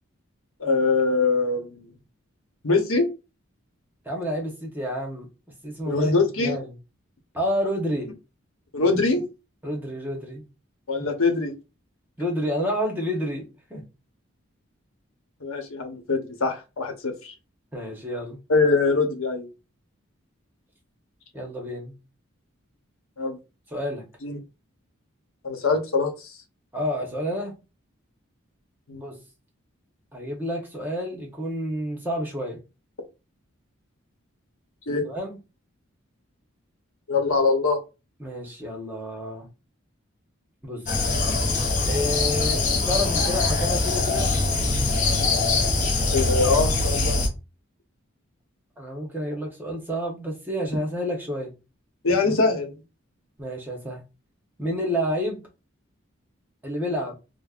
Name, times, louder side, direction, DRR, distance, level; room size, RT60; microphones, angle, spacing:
voice 1, 0.6-1.9 2.6-3.1 5.9-6.6 8.7-9.2 10.9-11.5 15.4-17.3 18.5-19.5 23.2-23.4 24.2-24.4 25.4-26.3 28.9-29.0 34.9-35.0 37.1-37.8 46.1-47.2 52.0-52.8, left 3 dB, 80° left, 0.9 m, -23 dB
voice 2, 4.0-5.3 5.6-6.1 6.4-6.7 7.3-8.1 9.6-10.4 12.2-13.8 17.7-18.4 21.3-21.9 23.7-24.1 26.7-27.6 28.9-29.2 30.1-32.6 35.1-35.4 38.2-39.5 40.6-40.8 41.9-44.3 48.8-51.5 53.4-54.0 54.6-55.4 56.6-57.2, equal, 10° right, 0.9 m, -29 dB
sound 1, 40.9-47.3, left 3 dB, 35° left, 0.7 m, -23 dB
5.1 x 2.1 x 2.4 m
head